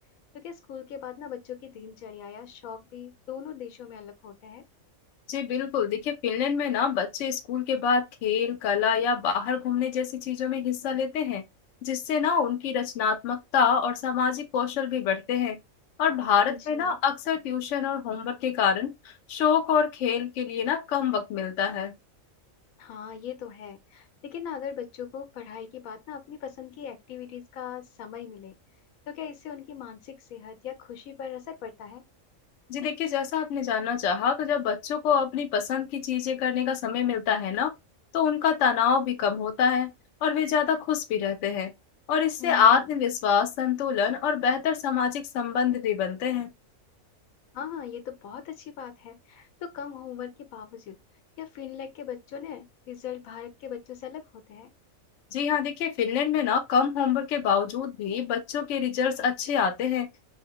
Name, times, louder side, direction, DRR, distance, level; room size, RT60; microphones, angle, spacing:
voice 1, 0.3-4.6 16.5-17.0 22.8-28.5 29.0-32.0 42.4-43.0 47.5-51.0 51.4-54.7, left 8 dB, 90° left, 1.1 m, -40 dB
voice 2, 5.3-11.4 11.8-15.6 16.0-18.9 19.3-21.9 32.7-37.7 38.1-39.9 40.2-41.7 42.1-46.5 55.3-60.1, left 7 dB, 70° left, 0.9 m, -26 dB
3.0 x 2.1 x 2.8 m
omnidirectional pair, 1.4 m